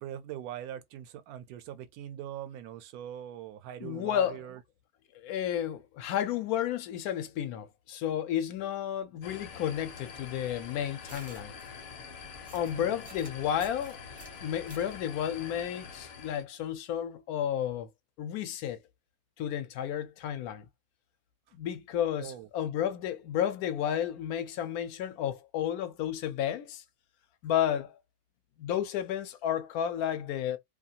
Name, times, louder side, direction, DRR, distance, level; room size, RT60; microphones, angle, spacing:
voice 1, 0.0-4.6 12.7-13.1 22.2-22.5, right 11 dB, 80° right, 1.1 m, -41 dB
voice 2, 3.8-4.4 5.1-11.5 12.5-14.0 14.4-17.9 18.2-18.8 19.4-20.7 21.6-26.8 27.4-28.0 28.6-30.6, left 10 dB, 80° left, 1.1 m, -32 dB
sound 1, 9.2-16.4, left 6 dB, 60° left, 1.0 m, -46 dB
sound 2, 9.7-15.0, right 1 dB, 10° right, 0.4 m, -54 dB
2.7 x 2.4 x 2.7 m
omnidirectional pair, 1.6 m